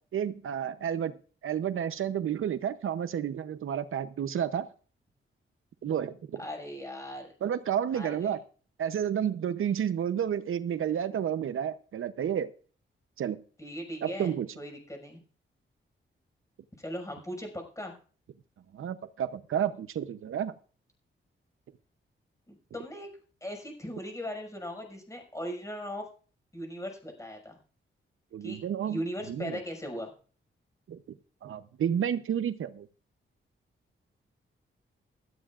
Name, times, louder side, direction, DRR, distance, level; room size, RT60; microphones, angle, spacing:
voice 1, 0.1-1.1 1.4-4.7 5.8-6.4 7.4-8.4 8.8-12.5 13.2-13.4 14.0-14.5 18.7-20.5 28.3-29.0 29.3-29.6 30.9-31.0 31.4-32.9, right 9 dB, 80° right, 0.8 m, -31 dB
voice 2, 6.4-7.3 7.9-8.3 13.6-14.3 14.6-15.2 16.8-17.9 22.5-23.1 23.4-26.0 26.5-27.6 28.4-28.6 28.9-30.1, equal, 15° left, 5.9 m, -38 dB
16.5 x 13.5 x 2.5 m
wide cardioid pair, 125°, 21 cm